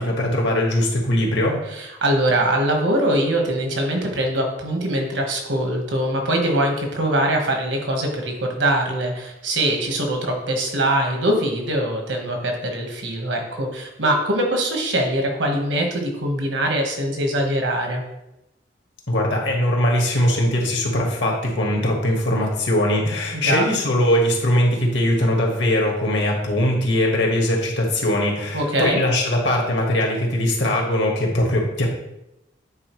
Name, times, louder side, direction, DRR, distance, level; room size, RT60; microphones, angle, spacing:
voice 1, 0.0-1.6 19.1-31.9, left 1 dB, 75° left, 0 dB, 1.5 m, -21 dB
voice 2, 1.7-18.0 23.3-23.7 28.5-29.0, right 1 dB, 90° right, 2 dB, 1.3 m, -22 dB
8.7 x 4.1 x 3.1 m, 0.89 s
head